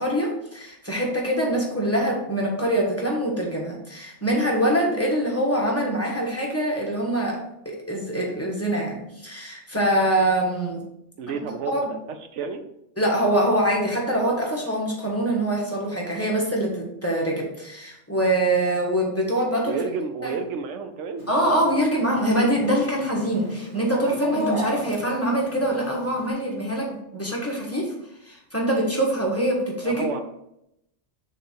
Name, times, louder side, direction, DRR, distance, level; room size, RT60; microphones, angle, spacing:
voice 1, 0.0-10.8 11.7-11.9 13.0-19.8 20.2-20.4 21.3-27.9 28.3-30.1, right 1 dB, 15° left, -3 dB, 1.2 m, -24 dB
voice 2, 11.2-12.0 12.3-12.6 19.6-21.2 29.8-30.2, right 5 dB, 90° right, 8 dB, 1.0 m, -30 dB
Chicken rooster, 21.2-26.3, equal, 45° right, 1.6 m, -35 dB
6.5 x 3.3 x 4.4 m, 0.81 s
omnidirectional pair, 1.2 m